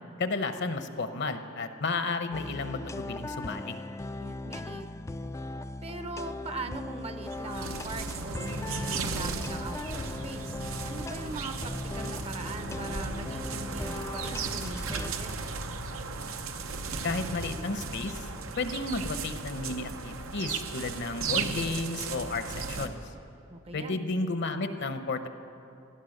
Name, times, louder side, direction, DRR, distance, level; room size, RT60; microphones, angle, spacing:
voice 1, 0.2-3.7 17.0-18.2 18.6-23.0 23.7-25.3, left 3 dB, 60° left, 9 dB, 0.9 m, -32 dB
sound 1, 2.3-15.1, left 2 dB, 15° left, 0.3 m, -39 dB
voice 2, 4.2-4.9 5.8-15.4 23.5-24.0, right 2 dB, 30° right, 8 dB, 0.7 m, -41 dB
sound 2, 7.2-22.9, right 4 dB, 85° right, 0.9 m, -36 dB
17.0 x 11.5 x 6.6 m, 2.6 s
head